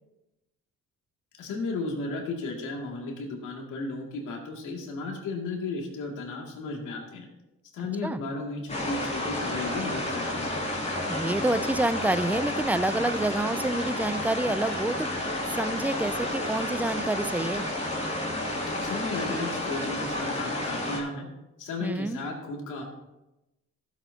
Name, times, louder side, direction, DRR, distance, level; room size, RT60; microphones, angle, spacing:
voice 1, 1.4-7.3 7.7-10.5 18.8-21.3 21.6-22.8, left 3 dB, 85° left, 0 dB, 2.4 m, -34 dB
sound 1, 8.7-21.0, left 1 dB, 20° left, 2.6 m, -31 dB
voice 2, 11.1-15.1 15.5-17.7 21.8-22.2, right 2 dB, 5° right, 14 dB, 0.4 m, -28 dB
15.0 x 8.1 x 2.8 m, 0.97 s
cardioid pair, 90°, 30 cm